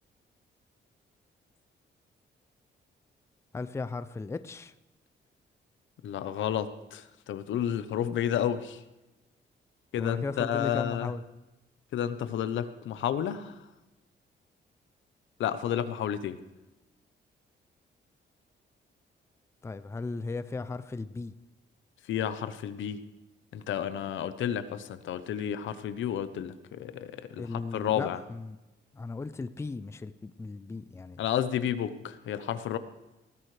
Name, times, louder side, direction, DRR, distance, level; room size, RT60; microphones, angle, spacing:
voice 1, 3.5-4.7 10.0-11.2 19.6-21.3 27.4-28.6 28.9-31.2, left 3 dB, 15° left, 13 dB, 0.4 m, -36 dB
voice 2, 6.0-8.8 9.9-11.1 11.9-13.5 15.4-16.4 22.1-23.0 23.5-28.2 31.2-32.8, left 10 dB, 85° left, 12 dB, 0.9 m, -31 dB
19.0 x 13.5 x 3.3 m, 1.0 s
cardioid pair, 140°, 19 cm